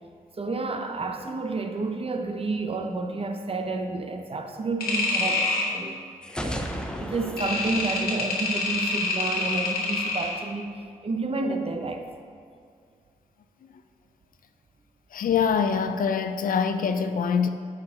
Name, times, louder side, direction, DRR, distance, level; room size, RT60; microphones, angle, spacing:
voice 1, 0.4-6.0 6.4-10.8 11.0-12.1, right 3 dB, 40° right, 5 dB, 0.7 m, -30 dB
sound 1, 4.8-5.7 7.4-10.4, left 3 dB, 80° left, 1.3 m, -27 dB
sound 2, 6.2-9.1, equal, 5° left, 0.7 m, -35 dB
voice 2, 15.1-17.5, left 6 dB, 65° left, 9 dB, 0.4 m, -24 dB
8.6 x 4.5 x 3.7 m, 2.2 s
cardioid pair, 50°, 15 cm